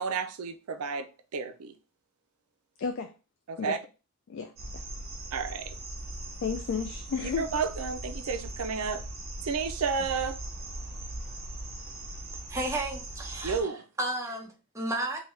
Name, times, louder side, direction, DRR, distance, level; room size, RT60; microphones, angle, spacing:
voice 1, 0.0-1.7 3.5-3.8 5.3-5.7 7.4-9.0 9.4-10.4 13.4-13.8, right 5 dB, 80° right, 0.4 m, -31 dB
voice 2, 2.8-3.1 3.6-3.8 4.3-4.8 6.4-7.5, left 6 dB, 60° left, 0.3 m, -33 dB
sound 1, 4.6-13.6, right 1 dB, 45° right, 0.9 m, -39 dB
voice 3, 12.5-13.7 14.0-15.2, right 1 dB, 15° right, 0.8 m, -33 dB
3.4 x 2.2 x 3.1 m
head